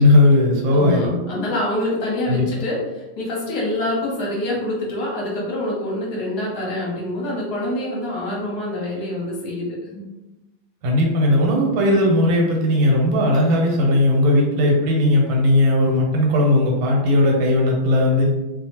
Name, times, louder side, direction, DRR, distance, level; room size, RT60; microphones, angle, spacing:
voice 1, 0.0-1.1 2.3-2.5 10.8-18.3, left 1 dB, 85° right, -1 dB, 1.5 m, -17 dB
voice 2, 0.7-2.8 3.2-10.0, left 1 dB, 65° left, -3 dB, 1.2 m, -26 dB
3.2 x 2.0 x 2.8 m, 1.0 s
omnidirectional pair, 2.1 m